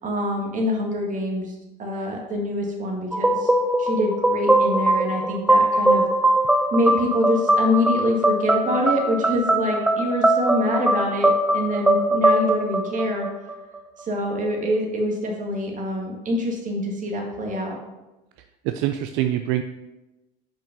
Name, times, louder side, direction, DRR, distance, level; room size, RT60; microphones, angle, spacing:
voice 1, 0.0-3.5 3.8-6.0 6.7-13.3 14.0-17.8, left 1 dB, 40° right, 1 dB, 1.9 m, -25 dB
sound 1, 3.1-13.8, right 1 dB, 5° right, 0.6 m, -21 dB
voice 2, 18.7-19.6, right 12 dB, 70° right, 8 dB, 0.5 m, -24 dB
5.3 x 5.2 x 5.3 m, 1.0 s
supercardioid pair, 95°, 21 cm